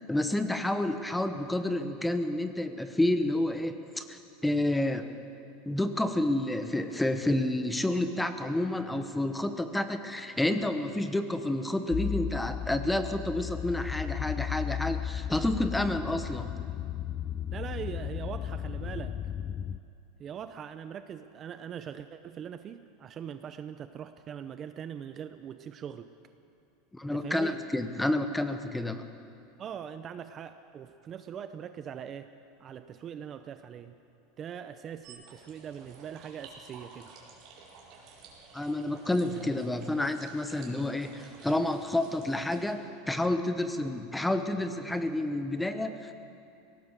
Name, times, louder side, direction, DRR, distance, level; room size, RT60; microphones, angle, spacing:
voice 1, 0.1-5.1 5.7-16.5 26.9-29.1 38.5-46.1, left 1 dB, 5° left, 9 dB, 1.0 m, -29 dB
sound 1, 11.9-19.8, left 10 dB, 30° left, 0.5 m, -35 dB
voice 2, 17.5-19.1 20.2-26.1 27.1-27.6 29.6-32.3 32.6-33.9 34.4-37.1, right 8 dB, 30° right, 10 dB, 0.7 m, -41 dB
sound 2, 35.0-42.7, right 4 dB, 45° right, 4.4 m, -52 dB
22.5 x 18.0 x 6.7 m, 2.6 s
supercardioid pair, 150°, 0 cm